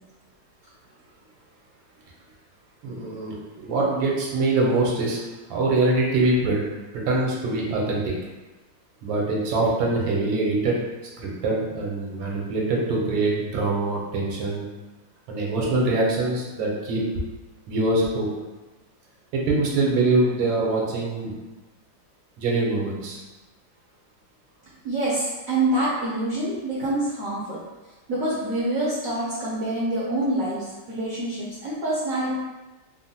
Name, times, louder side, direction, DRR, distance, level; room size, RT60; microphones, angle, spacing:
voice 1, 2.8-5.2 5.5-6.6 6.9-8.1 9.0-10.8 11.2-14.7 15.3-17.1 17.7-18.3 19.3-21.3 22.4-23.2, right 2 dB, 85° right, -2 dB, 1.4 m, -24 dB
voice 2, 24.8-27.6 28.1-32.3, right 1 dB, 65° right, -7 dB, 0.8 m, -26 dB
3.6 x 2.1 x 2.7 m, 1.1 s
omnidirectional pair, 2.1 m